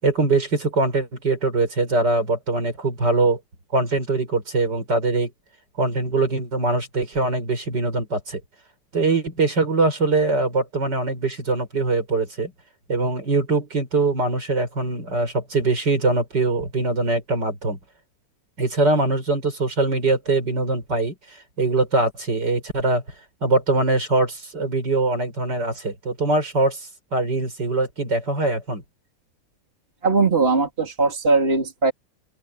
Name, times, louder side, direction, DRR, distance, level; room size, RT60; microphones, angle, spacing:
voice 1, 0.0-3.4 3.7-5.3 5.8-8.4 8.9-12.5 12.9-17.8 18.6-21.1 21.6-23.0 23.4-28.8, right 3 dB, 65° right, 5.9 m, -22 dB
voice 2, 30.0-31.9, right 3 dB, 30° right, 3.5 m, -19 dB
open air
omnidirectional pair, 2.0 m